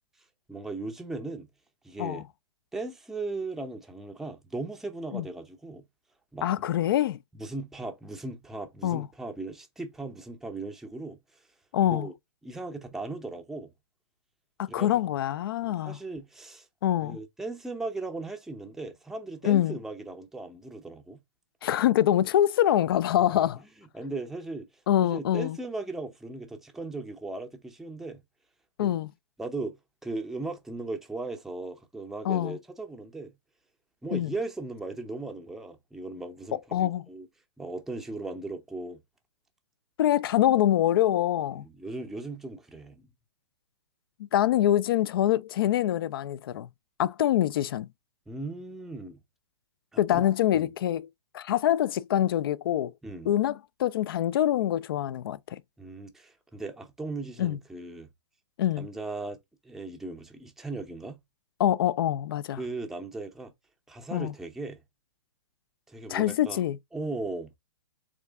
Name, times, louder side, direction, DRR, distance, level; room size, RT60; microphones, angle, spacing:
voice 1, 0.5-1.5 1.8-2.2 2.7-5.8 6.3-6.5 7.3-11.2 11.8-12.1 12.4-13.7 14.7-15.0 15.6-16.7 17.0-21.2 23.9-24.7 25.0-28.2 28.8-29.0 29.4-29.8 30.0-33.3 34.0-37.3 37.6-39.0 41.5-43.1 48.3-49.2 49.9-50.2 50.5-50.7 53.0-53.3 55.8-58.1 58.8-59.4 59.6-61.2 62.6-63.5 63.9-64.8 65.9-66.6 66.9-67.6, right 2 dB, ahead, 0.6 m, -37 dB
voice 2, 6.4-7.2 8.8-9.1 11.7-12.1 14.6-16.0 16.8-17.2 19.4-19.8 21.6-23.6 24.9-25.6 28.8-29.1 32.3-32.6 34.1-34.3 36.7-37.0 40.0-41.6 44.3-46.7 47.0-47.9 50.0-51.1 51.3-52.9 53.3-55.6 57.4-57.6 58.6-58.9 61.6-62.6 64.1-64.3 66.1-66.8, left 12 dB, 50° left, 0.4 m, -25 dB
3.6 x 3.2 x 3.5 m
figure-of-eight pair, 120°, 15 cm